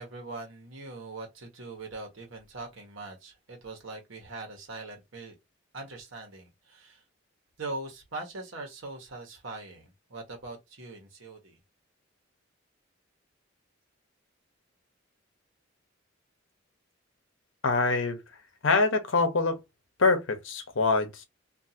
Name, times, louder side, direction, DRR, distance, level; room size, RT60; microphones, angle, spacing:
voice 1, 0.0-5.4 5.7-7.0 7.6-11.6, right 2 dB, 80° right, 1.2 m, -41 dB
voice 2, 17.6-18.2 18.6-19.6 20.0-21.2, left 3 dB, 70° left, 0.8 m, -24 dB
2.6 x 2.5 x 2.7 m
head